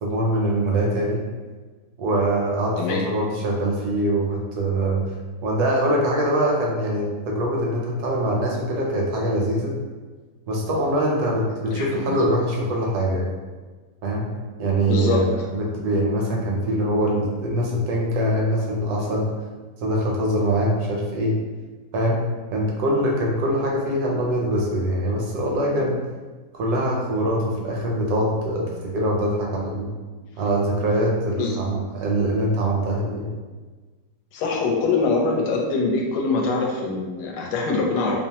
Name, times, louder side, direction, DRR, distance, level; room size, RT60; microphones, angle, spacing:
voice 1, 0.0-1.2 2.0-5.0 5.4-9.7 10.5-13.3 14.0-14.3 14.6-19.3 19.8-21.4 21.9-22.2 22.5-26.0 26.5-29.9 30.4-33.3, right 1 dB, 75° right, -2 dB, 1.0 m, -23 dB
voice 2, 2.8-3.1 11.7-11.9 14.9-15.2 31.4-31.6 34.3-38.2, left 3 dB, 80° left, 0 dB, 1.1 m, -23 dB
2.9 x 2.0 x 2.7 m, 1.4 s
omnidirectional pair, 1.8 m